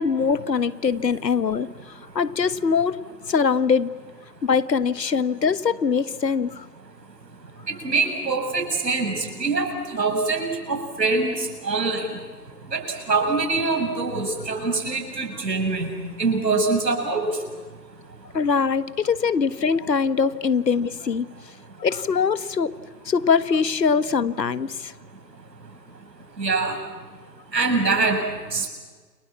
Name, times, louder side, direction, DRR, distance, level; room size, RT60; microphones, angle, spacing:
voice 1, 0.0-3.0 3.3-3.9 4.4-6.7 14.6-14.7 18.3-21.3 21.8-22.7 23.0-24.9, left 5 dB, 75° left, 15 dB, 1.5 m, -22 dB
voice 2, 7.7-12.1 12.7-15.9 16.2-17.3 26.4-26.8 27.5-28.2 28.5-28.7, right 3 dB, 75° right, 4 dB, 6.9 m, -24 dB
29.5 x 25.5 x 7.4 m, 1.4 s
hypercardioid pair, 160°, 50 cm